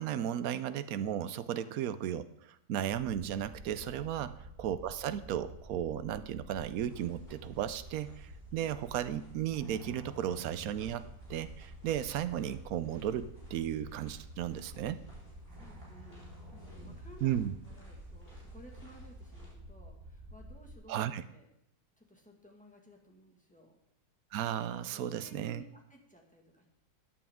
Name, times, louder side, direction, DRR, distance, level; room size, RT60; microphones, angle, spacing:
voice 1, 0.0-4.3 4.6-15.0 17.2-17.5 20.9-21.2 24.3-25.6, right 10 dB, 70° right, 13 dB, 1.0 m, -35 dB
sound 1, 2.9-20.7, right 1 dB, 45° right, 4.1 m, -50 dB
sound 2, 6.8-19.5, left 1 dB, 30° left, 4.1 m, -59 dB
voice 2, 15.5-21.5 22.0-23.8 24.9-26.6, equal, 5° left, 0 dB, 1.6 m, -57 dB
13.5 x 9.3 x 3.6 m, 0.78 s
omnidirectional pair, 1.6 m